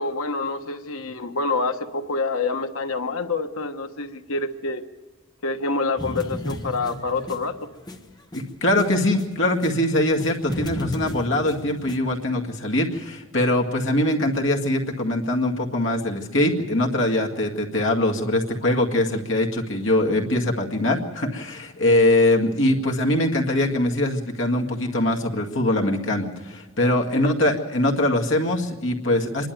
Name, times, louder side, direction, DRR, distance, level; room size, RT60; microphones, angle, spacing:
voice 1, 0.0-4.8 5.4-7.7 27.1-27.3, left 3 dB, 80° left, 7 dB, 1.2 m, -27 dB
sound 1, 6.0-9.8 10.1-12.0, left 1 dB, 20° left, 1.2 m, -34 dB
voice 2, 8.3-29.5, left 1 dB, 60° left, 1 dB, 2.0 m, -22 dB
26.5 x 11.5 x 9.2 m, 1.2 s
head